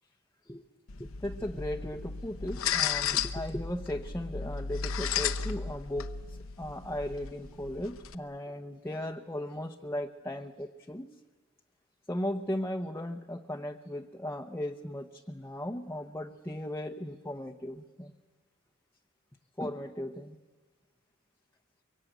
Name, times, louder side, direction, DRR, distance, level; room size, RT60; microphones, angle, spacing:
sound 1, 0.9-8.2, left 7 dB, 70° left, 0.9 m, -34 dB
voice 1, 1.0-11.1 12.1-18.1 19.6-20.4, left 1 dB, 10° left, 3 dB, 0.8 m, -37 dB
24.0 x 23.5 x 9.2 m, 1.3 s
head